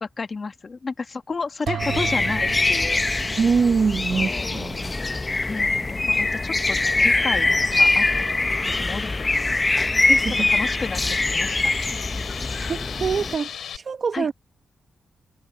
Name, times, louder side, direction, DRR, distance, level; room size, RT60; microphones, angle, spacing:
voice 1, 0.0-3.0 4.1-4.7 5.5-8.1 8.4-9.6 10.5-11.0 11.3-11.6 14.1-14.3, left 4 dB, 35° left, 1.6 m, -32 dB
sound 1, 1.7-4.4, right 9 dB, 85° right, 2.3 m, -34 dB
sound 2, 1.8-13.4, left 2 dB, 20° left, 0.7 m, -23 dB
voice 2, 3.4-5.0 10.1-10.5 12.7-14.3, right 5 dB, 45° right, 0.9 m, -24 dB
sound 3, 6.8-13.8, left 8 dB, 75° left, 5.2 m, -37 dB
wide cardioid pair, 125°, 0 cm